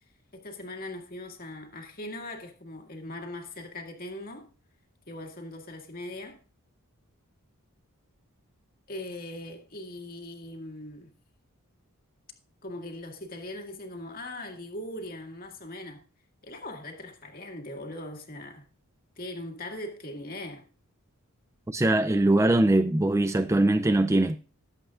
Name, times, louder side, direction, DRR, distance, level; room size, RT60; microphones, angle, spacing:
voice 1, 0.3-4.5 5.1-6.4 8.9-11.1 12.6-16.0 16.4-18.7 19.2-20.6, left 1 dB, 40° left, 2.0 m, -40 dB
voice 2, 21.7-24.4, right 2 dB, 15° right, 0.4 m, -22 dB
20.0 x 7.9 x 2.5 m
head